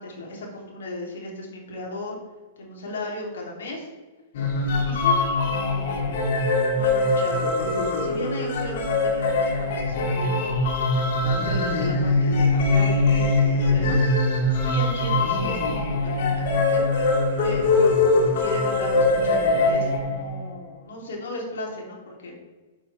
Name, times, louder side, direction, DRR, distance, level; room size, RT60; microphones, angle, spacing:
voice 1, 0.0-2.2 2.6-3.9 4.6-7.6 8.0-10.5 11.2-16.8 17.4-22.4, left 2 dB, 80° left, -2 dB, 2.8 m, -36 dB
sound 1, 4.3-20.4, left 2 dB, 65° left, 1.9 m, -22 dB
8.4 x 7.4 x 3.4 m, 1.3 s
hypercardioid pair, 120°, 0 cm